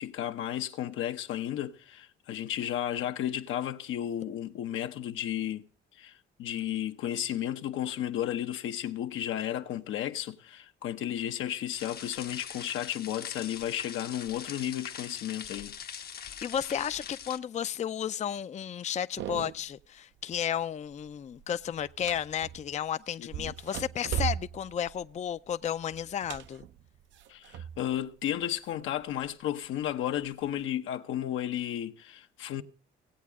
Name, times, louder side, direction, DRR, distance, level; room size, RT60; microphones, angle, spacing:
voice 1, 0.0-5.7 5.9-15.8 23.2-23.5 27.3-32.6, left 11 dB, 85° left, 0.9 m, -33 dB
sound 1, 11.7-17.4, left 8 dB, 55° left, 0.8 m, -43 dB
voice 2, 16.4-26.6, left 9 dB, 35° left, 0.4 m, -33 dB
sound 2, 19.2-19.8 20.2-20.6 20.9-22.8 23.3-28.0 28.3-29.3 29.9-30.7, right 10 dB, 70° right, 0.6 m, -38 dB
17.5 x 8.4 x 3.6 m
cardioid pair, 90°, 20 cm